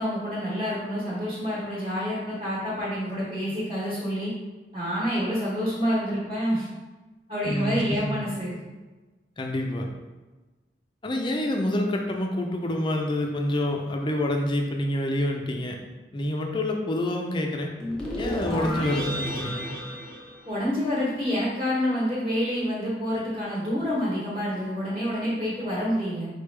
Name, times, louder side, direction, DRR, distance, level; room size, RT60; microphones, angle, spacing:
voice 1, 0.0-4.3 4.7-6.7 7.3-8.6 20.5-26.3, equal, 30° right, -9 dB, 1.3 m, -28 dB
voice 2, 7.5-8.1 9.4-9.9 11.0-15.8 16.1-17.7 18.2-19.7, left 1 dB, 25° left, 2 dB, 0.5 m, -27 dB
sound 1, 17.8-21.1, left 1 dB, 5° left, 0.9 m, -32 dB
4.4 x 3.4 x 3.3 m, 1.2 s
head